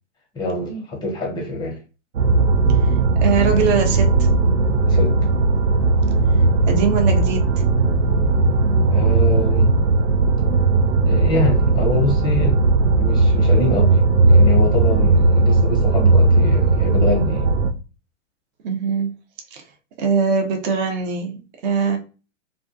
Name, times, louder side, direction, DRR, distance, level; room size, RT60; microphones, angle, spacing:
voice 1, 0.3-1.8 4.8-5.1 8.9-9.7 11.1-12.6 12.9-14.0 14.3-17.5, left 2 dB, 10° left, 0.6 m, -25 dB
sound 1, 2.1-17.7, right 3 dB, 90° right, 0.5 m, -17 dB
voice 2, 3.2-4.3 6.7-7.5 18.6-19.1 19.5-19.6 20.0-22.0, right 5 dB, 40° right, 0.6 m, -21 dB
2.3 x 2.2 x 2.5 m
hypercardioid pair, 120°, 37 cm